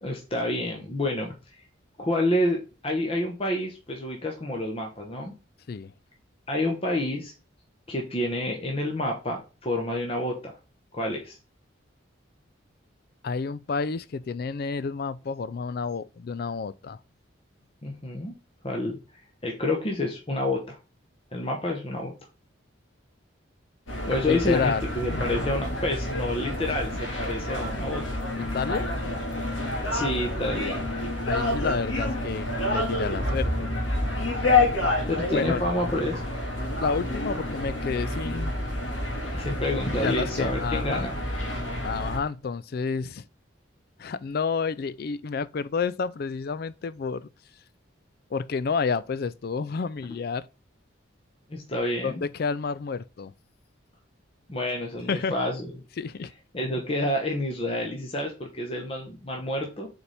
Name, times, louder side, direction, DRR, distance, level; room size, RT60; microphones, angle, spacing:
voice 1, 0.0-1.3 2.0-2.6 2.8-5.3 6.5-7.3 7.9-10.5 10.9-11.4 17.8-18.3 18.6-19.0 19.4-20.8 21.3-22.1 24.1-28.2 29.9-30.9 35.1-36.2 39.3-41.2 51.5-52.2 54.5-55.7 56.5-59.9, left 1 dB, 30° left, 1.1 m, -28 dB
voice 2, 13.2-17.0 24.3-24.9 28.4-28.9 31.3-33.7 35.3-35.6 36.8-38.5 39.9-41.1 41.8-43.2 44.0-47.3 48.3-50.5 52.0-53.3 55.1-55.4 56.0-56.3, left 5 dB, 50° left, 0.4 m, -30 dB
sound 1, 23.9-42.2, left 2 dB, 75° left, 1.9 m, -28 dB
6.9 x 4.2 x 3.4 m
head